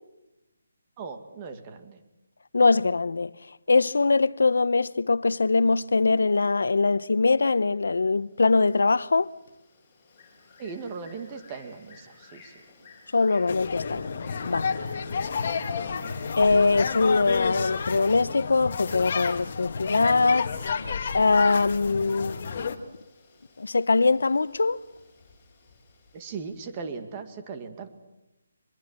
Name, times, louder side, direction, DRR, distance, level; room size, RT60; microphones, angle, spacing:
voice 1, 1.0-2.0 10.6-12.5 26.1-27.9, right 5 dB, 20° right, 2.1 m, -38 dB
voice 2, 2.5-3.3 3.7-9.3 13.1-14.8 16.4-22.4 23.6-24.8, left 3 dB, 80° left, 0.9 m, -22 dB
Bird, 8.1-26.8, left 4 dB, 15° left, 7.8 m, -54 dB
sound 1, 13.5-22.8, left 5 dB, 40° left, 2.1 m, -31 dB
25.0 x 23.0 x 7.5 m
hypercardioid pair, 170°, 0 cm